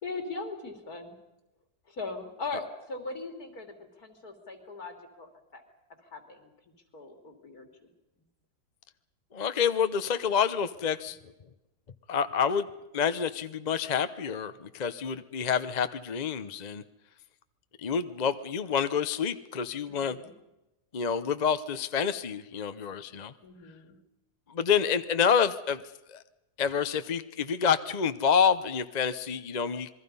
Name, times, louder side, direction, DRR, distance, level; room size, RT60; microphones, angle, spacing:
voice 1, 0.0-1.2 1.9-5.6 6.1-6.5 6.9-7.9 19.9-20.3 23.4-24.0, left 3 dB, 70° left, 5 dB, 3.5 m, -40 dB
voice 2, 9.3-11.2 12.1-12.7 12.9-16.8 17.8-20.2 20.9-23.3 24.5-25.8 26.1-26.2 26.6-29.9, left 7 dB, 35° left, 12 dB, 0.7 m, -28 dB
27.0 x 21.5 x 5.5 m, 0.95 s
omnidirectional pair, 1.7 m